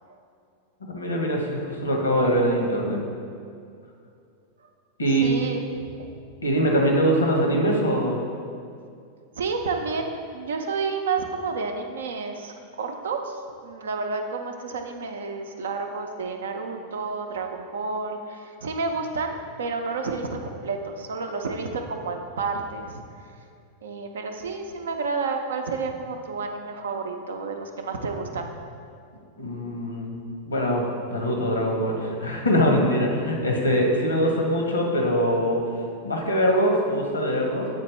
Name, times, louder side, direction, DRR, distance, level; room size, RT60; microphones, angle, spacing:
voice 1, 0.8-3.0 5.0-5.3 6.4-8.2 29.4-30.2 30.5-30.8 31.1-35.6 36.0-37.7, equal, 75° left, 1 dB, 1.0 m, -23 dB
voice 2, 5.1-6.1 9.4-23.0 23.8-28.5, right 4 dB, 65° right, 4 dB, 0.5 m, -30 dB
8.1 x 4.2 x 3.2 m, 2.4 s
figure-of-eight pair, 90°, 0 cm